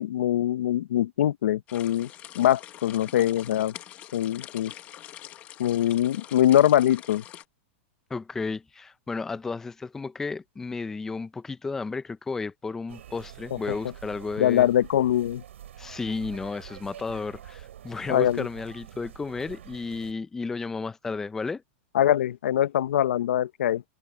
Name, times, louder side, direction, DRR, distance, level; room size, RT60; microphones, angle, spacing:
voice 1, 0.0-2.1 2.3-3.7 4.1-4.7 5.6-7.2 13.7-13.8 14.4-15.4 18.1-18.5 21.9-23.8, left 11 dB, 80° left, 0.7 m, -23 dB
sound 1, 1.7-7.4, left 12 dB, 25° left, 1.1 m, -44 dB
voice 2, 8.1-14.7 15.8-21.6, left 4 dB, 5° left, 0.5 m, -33 dB
sound 2, 12.9-20.1, right 11 dB, 85° right, 5.2 m, -46 dB
supercardioid pair, 170°, 7 cm